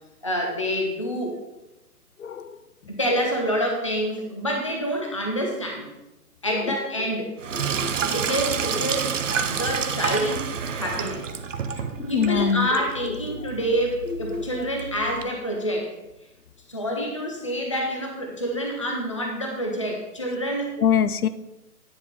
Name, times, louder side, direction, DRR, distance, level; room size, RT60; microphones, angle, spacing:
voice 1, 0.2-1.4 3.0-5.9 6.4-7.4 8.1-9.2 9.6-11.3 12.0-15.9 16.7-20.7, equal, 20° left, 1 dB, 0.4 m, -27 dB
voice 2, 2.2-2.6 6.5-6.7 7.7-7.9 12.1-12.7 14.3-14.5 20.8-21.3, left 8 dB, 65° left, 13 dB, 0.6 m, -23 dB
Sink (filling or washing), 7.4-15.2, right 6 dB, 55° right, 0.6 m, -29 dB
9.9 x 3.5 x 5.8 m, 0.98 s
figure-of-eight pair, 145°, 48 cm